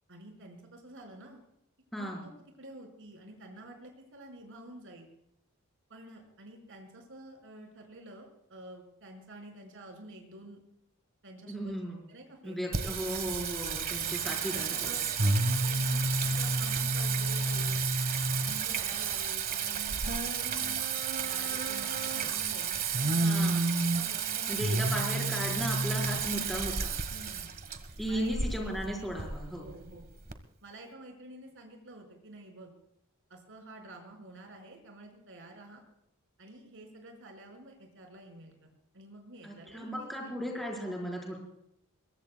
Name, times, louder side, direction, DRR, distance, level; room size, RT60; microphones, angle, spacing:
voice 1, 0.1-1.4 1.9-2.3 2.6-5.1 5.9-10.6 11.2-12.7 14.2-17.8 18.4-20.8 21.2-24.7 26.3-26.6 27.1-27.5 28.1-28.5 29.5-30.1 30.6-32.7 33.3-35.8 36.4-40.4, right 1 dB, 65° right, 2 dB, 5.2 m, -49 dB
voice 2, 1.9-2.2 11.5-12.0 12.4-15.0 23.2-23.9 24.5-26.9 28.0-29.7 39.4-41.4, equal, ahead, -1 dB, 4.5 m, -36 dB
Singing, 12.7-30.3, right 4 dB, 45° right, 1.4 m, -31 dB
23.5 x 22.0 x 2.3 m, 0.79 s
head